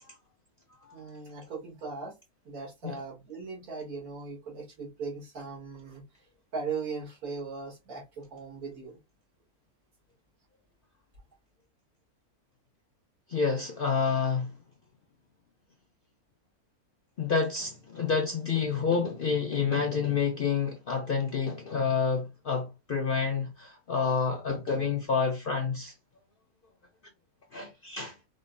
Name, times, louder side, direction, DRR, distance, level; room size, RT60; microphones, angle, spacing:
voice 1, 0.9-2.1 2.5-6.0 6.5-9.0, right 4 dB, 75° right, 1.9 m, -38 dB
voice 2, 13.3-14.5 17.2-25.9 27.5-28.1, left 5 dB, 60° left, 0.6 m, -28 dB
4.9 x 2.1 x 2.5 m
omnidirectional pair, 1.6 m